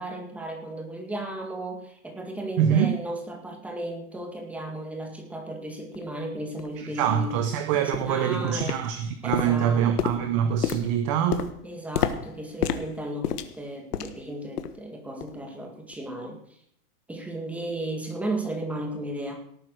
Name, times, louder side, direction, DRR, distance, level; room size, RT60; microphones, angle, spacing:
voice 1, 0.0-7.4 7.9-8.8 9.2-9.9 11.6-16.4 17.1-19.4, right 1 dB, 5° right, 2.0 m, -35 dB
voice 2, 2.6-2.9 6.8-11.5, right 8 dB, 20° right, 0.6 m, -24 dB
sound 1, 5.9-6.0 6.6-6.7 7.2-7.4 7.9-8.2 8.6-9.0 9.3-14.3 14.6-14.8 15.2-15.4 15.9-16.0, left 9 dB, 90° left, 1.6 m, -31 dB
18.0 x 9.1 x 6.5 m
supercardioid pair, 165°, 45 cm